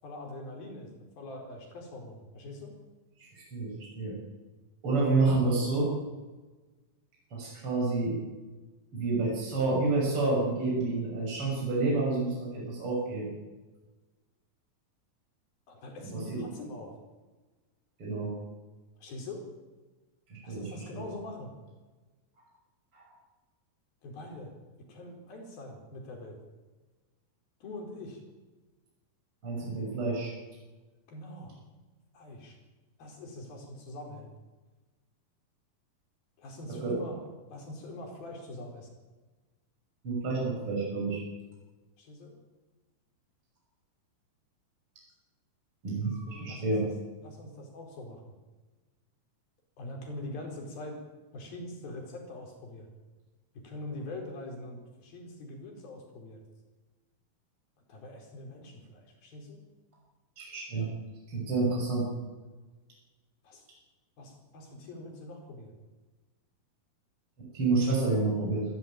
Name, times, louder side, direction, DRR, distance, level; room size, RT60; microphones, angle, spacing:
voice 1, 0.0-2.7 15.7-16.9 19.0-19.4 20.4-21.5 24.0-24.5 24.9-26.4 27.6-28.2 31.1-31.5 32.1-32.6 33.0-34.3 36.4-37.2 37.5-38.9 42.0-42.3 46.3-46.9 47.2-48.2 49.8-51.0 51.3-52.9 53.5-56.4 57.9-59.6 63.4-63.6 64.2-65.7, left 1 dB, 75° left, 2 dB, 6.6 m, -43 dB
voice 2, 3.5-4.1 4.8-5.9 7.3-8.1 8.9-13.3 16.0-16.4 18.0-18.3 20.3-20.6 20.9-21.0 22.9-23.1 29.4-30.3 36.8-37.0 40.0-41.2 45.8-46.8 60.4-60.9 61.3-62.1 67.5-68.7, right 3 dB, 35° right, -3 dB, 7.3 m, -29 dB
27.0 x 15.5 x 9.1 m, 1.3 s
omnidirectional pair, 4.3 m